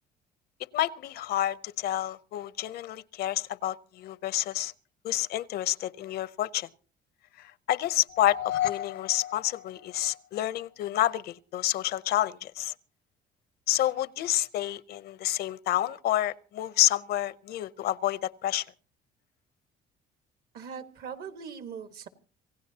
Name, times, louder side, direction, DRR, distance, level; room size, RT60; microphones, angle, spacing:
voice 1, 0.7-4.7 5.0-6.7 7.4-12.7 13.7-18.6, left 13 dB, 65° left, 0.6 m, -29 dB
sound 1, 8.1-10.4, left 12 dB, 90° left, 1.0 m, -34 dB
voice 2, 20.5-22.1, right 6 dB, 65° right, 1.5 m, -40 dB
27.0 x 16.0 x 2.8 m
cardioid pair, 110°, 17 cm